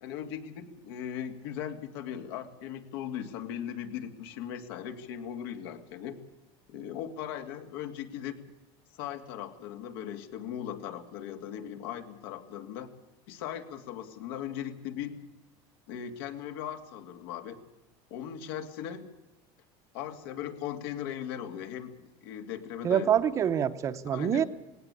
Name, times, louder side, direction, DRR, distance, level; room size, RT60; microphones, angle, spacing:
voice 1, 0.0-6.2 6.7-8.4 9.0-12.9 13.3-15.2 15.9-17.6 18.1-19.0 19.9-23.1 24.1-24.5, left 9 dB, 85° left, 6 dB, 2.6 m, -38 dB
voice 2, 22.8-24.4, right 9 dB, 25° right, 11 dB, 0.8 m, -26 dB
19.0 x 17.5 x 8.4 m, 0.99 s
cardioid pair, 180°, 12 cm